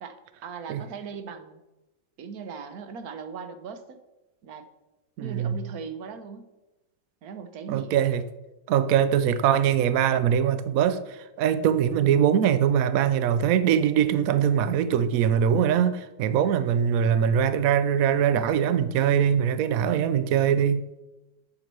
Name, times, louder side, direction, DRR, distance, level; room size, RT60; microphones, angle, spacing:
voice 1, 0.0-1.6 2.2-4.0 4.4-4.6 5.2-6.5 7.2-8.0, right 6 dB, 55° right, 1.2 m, -39 dB
voice 2, 5.2-5.6 7.7-8.2 8.7-20.8, right 8 dB, 90° right, 0.7 m, -22 dB
7.6 x 7.2 x 6.7 m
omnidirectional pair, 2.2 m